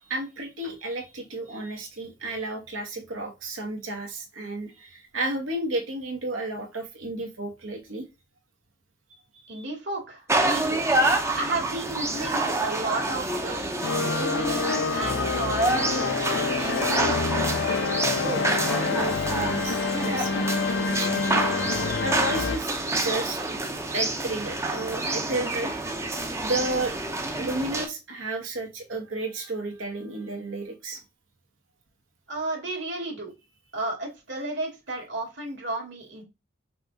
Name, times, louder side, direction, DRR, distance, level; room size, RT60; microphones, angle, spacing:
voice 1, 0.0-8.1 9.5-9.6 18.2-21.2 22.0-23.4 23.9-25.7 26.4-27.0 27.4-31.0, right 2 dB, 85° right, 1.4 m, -32 dB
voice 2, 9.5-10.8 11.3-13.6 14.1-17.5 32.3-33.3 33.7-36.2, right 2 dB, 65° right, 2.1 m, -33 dB
sound 1, 10.3-27.9, right 2 dB, 15° right, 0.6 m, -28 dB
sound 2, 13.8-22.6, left 5 dB, 65° left, 0.4 m, -27 dB
5.6 x 2.4 x 3.8 m
head